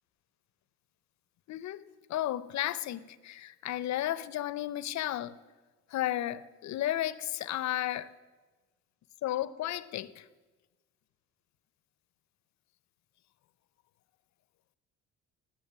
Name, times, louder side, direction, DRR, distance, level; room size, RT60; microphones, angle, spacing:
voice 1, 1.5-1.8 2.1-5.4 5.9-8.1 9.2-10.3, left 13 dB, 65° left, 0.6 m, -33 dB
9.5 x 7.5 x 8.6 m
cardioid pair, 90°, 30 cm